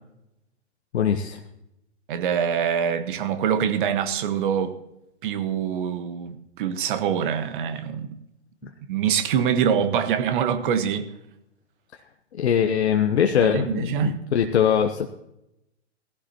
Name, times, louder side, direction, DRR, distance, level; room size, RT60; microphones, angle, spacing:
voice 1, 0.9-1.4 12.4-15.1, left 8 dB, 65° left, 1.0 m, -22 dB
voice 2, 2.1-4.7 5.2-8.1 8.9-11.1 13.4-14.2, right 8 dB, 45° right, 1.4 m, -24 dB
17.5 x 15.0 x 2.9 m
figure-of-eight pair, 120°, 35 cm